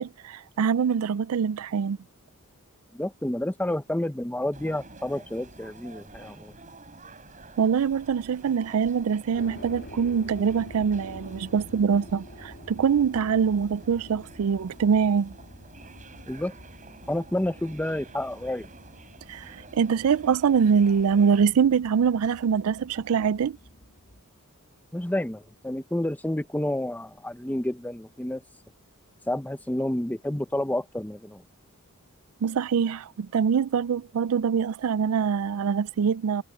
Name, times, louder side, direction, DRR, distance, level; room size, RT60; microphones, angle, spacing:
voice 1, 0.0-2.0 7.6-15.3 19.3-23.6 32.4-36.4, right 6 dB, 75° right, 0.4 m, -24 dB
voice 2, 2.9-6.5 16.3-16.5 17.1-18.7 24.9-28.4 29.3-31.4, left 1 dB, 5° left, 0.6 m, -29 dB
sound 1, 4.5-21.5, right 3 dB, 35° right, 7.8 m, -49 dB
sound 2, 9.3-24.2, left 1 dB, 55° left, 2.9 m, -48 dB
head